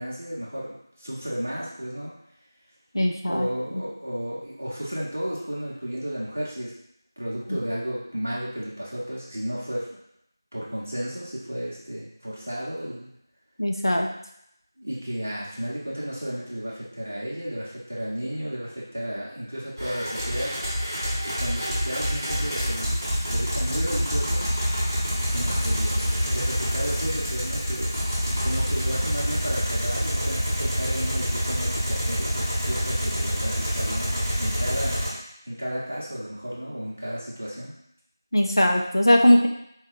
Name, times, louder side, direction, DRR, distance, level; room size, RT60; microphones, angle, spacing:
voice 1, 0.0-2.1 3.2-6.7 7.2-10.0 10.5-13.1 14.8-20.5 21.4-23.0 23.3-24.5 25.3-27.9 28.4-37.7, equal, 20° right, -6 dB, 0.6 m, -33 dB
voice 2, 2.9-3.5 13.6-14.1 38.3-39.5, left 1 dB, 80° left, 1 dB, 0.8 m, -19 dB
sound 1, 19.8-35.1, equal, ahead, 1.2 m, -26 dB
4.6 x 2.2 x 3.8 m, 0.75 s
figure-of-eight pair, 180°, 2 cm